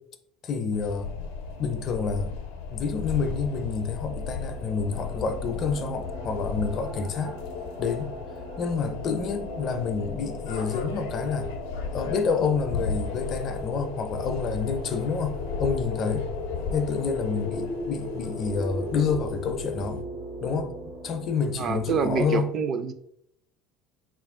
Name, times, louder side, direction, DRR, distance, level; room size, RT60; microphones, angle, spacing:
voice 1, 0.4-1.1 1.6-2.3 2.7-7.4 7.8-8.1 8.6-11.5 11.9-16.3 16.7-20.0 20.4-20.7 21.0-22.5, left 5 dB, 40° left, 0.5 m, -28 dB
sound 1, 0.7-20.0, left 5 dB, 90° left, 0.5 m, -35 dB
sound 2, 4.0-22.3, right 1 dB, 75° right, 0.9 m, -40 dB
voice 2, 21.6-22.9, right 5 dB, 35° right, 0.4 m, -26 dB
3.8 x 2.5 x 3.6 m
supercardioid pair, 130°, 0 cm